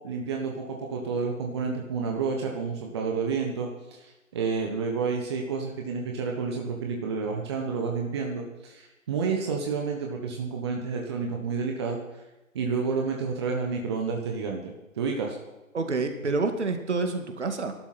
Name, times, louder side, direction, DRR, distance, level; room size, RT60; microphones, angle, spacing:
voice 1, 0.0-12.0 12.5-15.4, right 5 dB, 20° right, 1 dB, 1.1 m, -30 dB
voice 2, 15.7-17.7, right 3 dB, 55° right, 6 dB, 2.2 m, -28 dB
20.0 x 12.0 x 4.3 m, 1.0 s
figure-of-eight pair, 150°, 41 cm